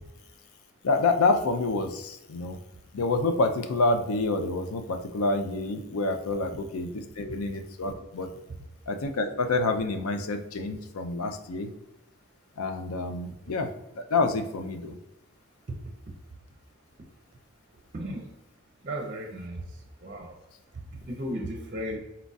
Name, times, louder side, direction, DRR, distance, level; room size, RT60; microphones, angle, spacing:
voice 1, 0.8-2.6 2.9-8.3 8.9-11.7 12.6-13.7 14.0-15.0, left 3 dB, 85° left, 6 dB, 0.5 m, -27 dB
voice 2, 17.9-18.3 18.8-20.4 20.9-22.0, right 1 dB, 40° right, 2 dB, 0.5 m, -35 dB
4.3 x 2.4 x 4.0 m, 0.93 s
head